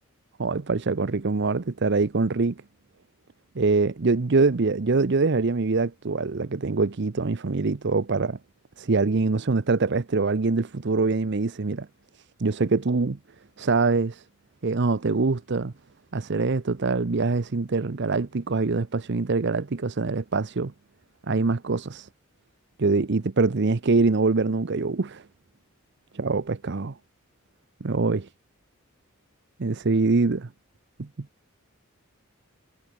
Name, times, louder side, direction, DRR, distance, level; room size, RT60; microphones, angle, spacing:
voice 1, 0.4-2.5 3.6-8.4 8.8-11.9 12.4-13.2 13.6-14.2 14.6-15.7 16.1-20.7 21.3-22.1 22.8-25.2 26.1-26.9 27.8-28.3 29.6-30.5 31.0-31.1, right 3 dB, 55° right, 0.7 m, -24 dB
head